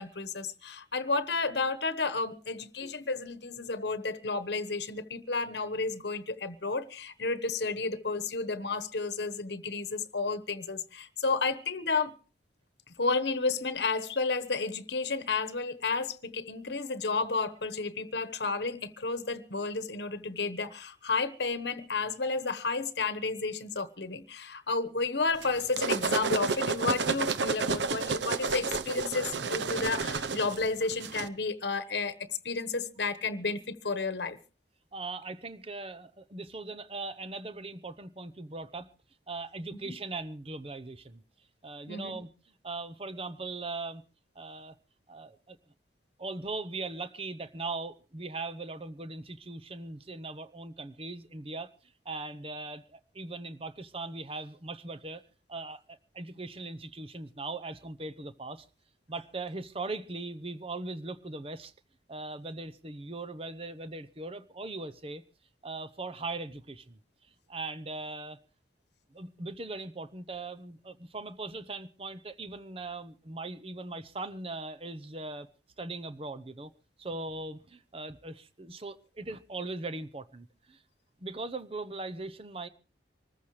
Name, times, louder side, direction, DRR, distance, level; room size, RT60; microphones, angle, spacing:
voice 1, 0.0-12.1 12.9-34.4 39.8-39.9 41.9-42.2, left 4 dB, 65° left, 1.2 m, -32 dB
sound 1, 25.4-31.3, right 4 dB, 75° right, 0.7 m, -31 dB
voice 2, 34.9-38.9 39.3-41.2 41.6-42.3 42.6-44.0 44.3-44.7 45.1-45.6 46.2-55.2 55.5-58.7 59.1-61.7 62.1-65.2 65.6-67.0 67.5-68.4 69.1-75.5 75.8-76.7 77.0-80.8 81.2-82.7, right 3 dB, 30° right, 0.8 m, -39 dB
25.5 x 14.5 x 3.2 m
head